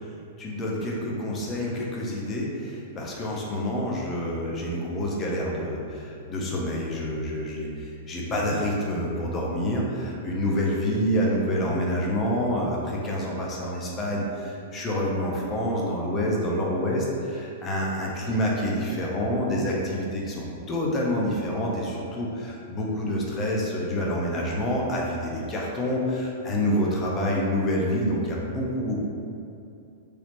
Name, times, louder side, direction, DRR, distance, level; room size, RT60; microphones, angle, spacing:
voice 1, 0.4-29.0, equal, 25° left, -3 dB, 0.5 m, -27 dB
3.2 x 2.0 x 2.9 m, 2.6 s
hypercardioid pair, 130°, 0 cm